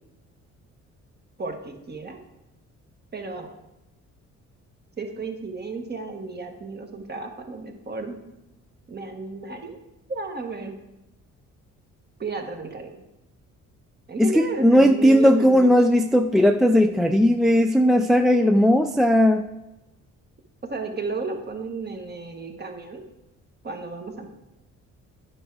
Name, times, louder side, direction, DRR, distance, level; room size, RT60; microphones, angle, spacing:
voice 1, 1.4-2.2 3.1-3.5 5.0-8.2 8.9-9.8 10.1-10.8 12.2-12.9 14.1-15.7 20.6-23.0 23.6-24.3, right 3 dB, 35° right, 4 dB, 1.4 m, -33 dB
voice 2, 14.2-19.5, equal, ahead, 6 dB, 0.3 m, -17 dB
9.8 x 4.7 x 4.7 m, 0.96 s
cardioid pair, 90°, 30 cm